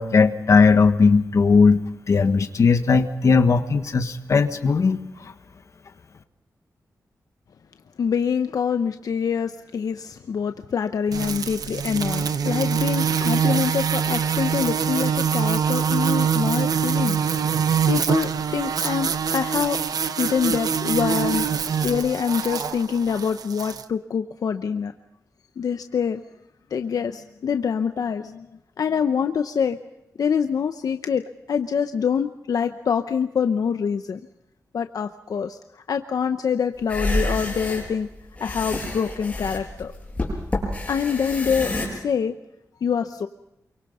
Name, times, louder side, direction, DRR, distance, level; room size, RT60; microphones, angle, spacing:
voice 1, 0.0-1.8 2.1-5.3, left 4 dB, 55° left, 8 dB, 1.4 m, -18 dB
voice 2, 8.0-17.2 17.9-19.8 20.1-21.5 21.8-24.9 25.6-26.2 26.7-28.5 28.8-29.8 30.2-31.2 31.5-34.2 34.7-38.1 38.4-39.9 40.9-42.3 42.8-43.3, left 7 dB, 75° left, 7 dB, 0.8 m, -25 dB
sound 1, 11.1-23.8, right 7 dB, 85° right, 0.9 m, -24 dB
sound 2, 36.8-41.9, left 1 dB, 20° left, 7.1 m, -28 dB
28.0 x 23.5 x 5.6 m, 0.86 s
wide cardioid pair, 175°, 6 cm